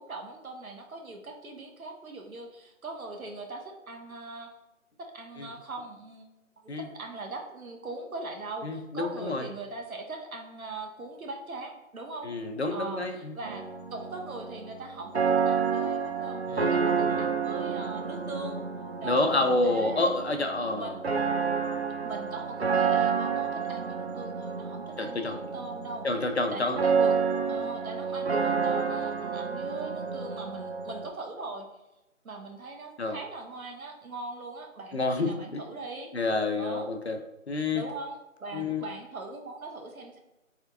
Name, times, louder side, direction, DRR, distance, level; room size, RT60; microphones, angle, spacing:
voice 1, 0.0-4.5 5.0-6.3 6.8-12.3 12.7-18.6 19.0-19.3 19.6-20.1 20.7-20.9 22.0-26.0 26.5-27.1 27.5-31.7 32.2-36.1 36.6-36.9 37.7-40.2, right 3 dB, 80° right, 3 dB, 1.0 m, -40 dB
voice 2, 8.6-9.5 12.2-13.3 16.5-16.7 17.1-17.3 19.0-21.0 25.0-25.4 26.0-26.8 33.0-33.2 34.9-35.6 36.1-37.2 37.5-37.8 38.5-38.8, left 2 dB, 55° left, 5 dB, 0.4 m, -28 dB
sound 1, 13.4-31.1, right 6 dB, 50° right, 0.5 m, -29 dB
4.2 x 3.5 x 2.4 m, 0.95 s
figure-of-eight pair, 170°, 41 cm